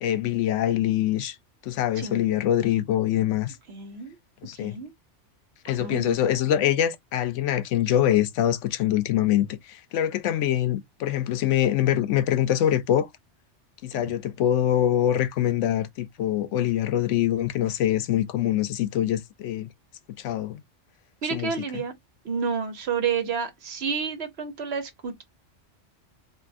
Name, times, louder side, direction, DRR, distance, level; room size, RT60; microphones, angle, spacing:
voice 1, 0.0-1.4 1.6-3.6 4.4-4.8 5.6-13.1 13.8-19.7 20.2-20.6 21.3-21.5, left 11 dB, 80° left, 0.9 m, -24 dB
voice 2, 3.7-4.2 4.6-4.9 5.7-6.2 13.9-14.0 21.2-21.9 22.2-25.2, right 6 dB, 60° right, 1.1 m, -30 dB
3.5 x 2.6 x 2.4 m
omnidirectional pair, 1.2 m